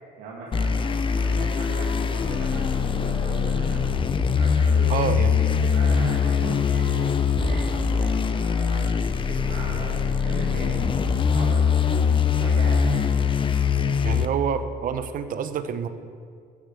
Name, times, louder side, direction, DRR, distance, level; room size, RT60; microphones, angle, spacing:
voice 1, 0.2-3.9 4.4-7.1 7.4-13.5, right 3 dB, 85° right, -4 dB, 1.9 m, -38 dB
sound 1, 0.5-14.3, left 6 dB, 30° left, 0.6 m, -22 dB
voice 2, 4.9-5.5 14.0-15.9, right 7 dB, 55° right, 10 dB, 0.9 m, -27 dB
12.5 x 7.2 x 7.4 m, 2.1 s
cardioid pair, 110°, 17 cm